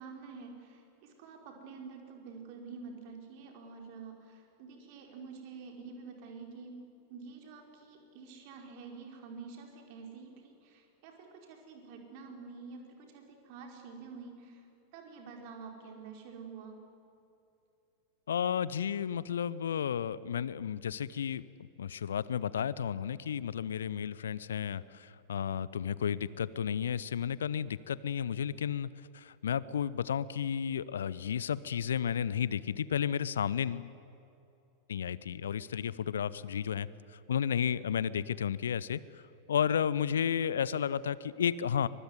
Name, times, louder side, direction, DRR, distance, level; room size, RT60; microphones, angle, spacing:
voice 1, 0.0-6.8 7.1-14.7 14.9-16.8, right 5 dB, 45° right, 3 dB, 4.8 m, -48 dB
voice 2, 18.3-33.9 34.9-39.2 39.5-41.9, left 8 dB, 65° left, 20 dB, 0.6 m, -32 dB
23.5 x 22.0 x 9.7 m, 2.7 s
figure-of-eight pair, 90°, 0 cm